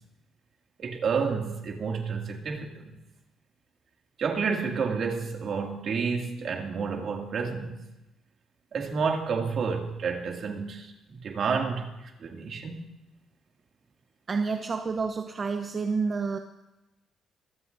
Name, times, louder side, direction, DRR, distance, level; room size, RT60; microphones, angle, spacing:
voice 1, 0.8-3.0 4.2-7.8 8.7-12.8, right 5 dB, 60° right, 2.4 m, -30 dB
voice 2, 14.3-16.4, right 4 dB, 40° right, 0.9 m, -29 dB
25.0 x 14.5 x 2.7 m
cardioid pair, 90°, 0 cm